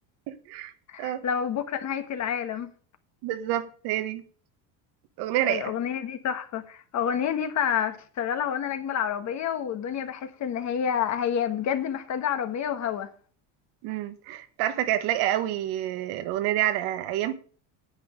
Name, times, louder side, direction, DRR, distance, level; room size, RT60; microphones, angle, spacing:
voice 1, 0.3-0.7 1.0-1.3 3.2-4.2 5.2-5.7 13.8-17.3, right 13 dB, 75° right, 1.4 m, -28 dB
voice 2, 0.9-2.7 5.4-13.1, left 8 dB, 45° left, 1.4 m, -29 dB
9.6 x 8.4 x 5.2 m
cardioid pair, 130°, 40 cm